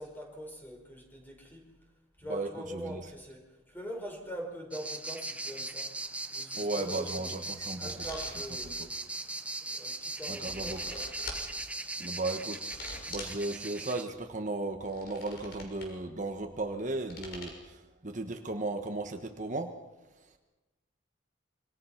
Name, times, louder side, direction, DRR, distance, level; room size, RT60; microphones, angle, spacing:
voice 1, 0.0-1.7 2.2-5.9 6.3-7.4 7.8-9.0 9.6-11.1, equal, 10° left, 0 dB, 5.4 m, -43 dB
voice 2, 2.3-3.0 6.6-7.9 8.6-8.7 10.3-10.8 12.0-12.6 13.1-19.7, right 2 dB, 40° right, 5 dB, 1.3 m, -35 dB
sound 1, 4.7-14.0, right 2 dB, 5° right, 1.0 m, -39 dB
sound 2, 7.9-8.7 10.2-11.4 12.5-13.4 14.7-15.9 17.1-17.5, left 2 dB, 55° left, 6.5 m, -44 dB
26.5 x 25.0 x 5.9 m, 1.1 s
head